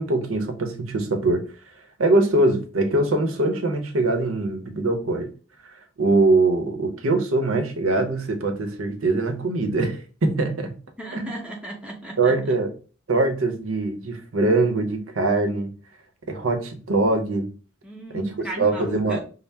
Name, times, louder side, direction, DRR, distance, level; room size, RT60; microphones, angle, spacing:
voice 1, 0.0-1.5 2.0-5.3 6.0-10.8 11.1-11.3 12.2-12.7 13.1-15.8 16.3-17.5 18.1-19.2, right 2 dB, 90° right, 0.8 m, -22 dB
voice 2, 11.0-12.3 17.8-19.2, right 2 dB, 5° right, 0.7 m, -35 dB
5.5 x 2.0 x 3.4 m
head